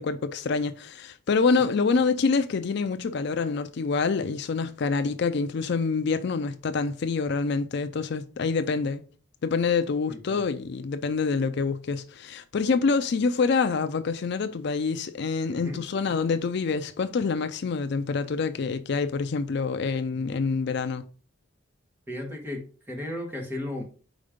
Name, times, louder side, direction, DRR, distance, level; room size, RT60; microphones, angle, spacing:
voice 1, 0.0-9.0 9.4-21.1, left 4 dB, 55° left, 0.4 m, -26 dB
voice 2, 10.1-10.4 15.5-15.8 22.1-23.8, left 1 dB, 10° right, 1.4 m, -35 dB
5.1 x 4.3 x 5.1 m
head